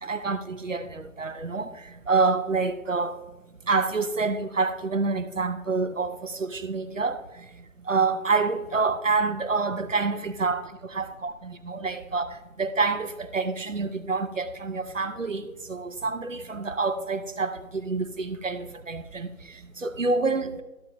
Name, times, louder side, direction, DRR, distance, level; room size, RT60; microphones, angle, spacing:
voice 1, 0.0-1.7 2.1-3.2 3.7-7.2 7.9-10.7 11.0-15.4 15.7-19.3 19.8-20.6, right 4 dB, 65° right, 0.8 m, -27 dB
12.5 x 6.0 x 3.0 m
figure-of-eight pair, 170°, 42 cm